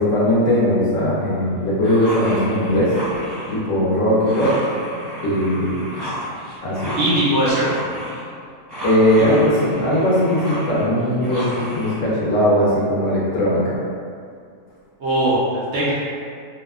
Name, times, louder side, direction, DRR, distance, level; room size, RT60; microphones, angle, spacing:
voice 1, 0.0-2.9 3.5-4.6 5.2-5.8 6.6-7.0 8.8-13.8, equal, 65° left, -7 dB, 0.8 m, -19 dB
sound 1, 1.8-3.6 4.2-8.3 8.7-12.0, equal, ahead, 0.7 m, -31 dB
voice 2, 7.0-7.7 9.2-9.3 15.0-15.9, right 1 dB, 75° right, -9 dB, 0.6 m, -20 dB
2.7 x 2.1 x 2.3 m, 2.2 s
omnidirectional pair, 1.7 m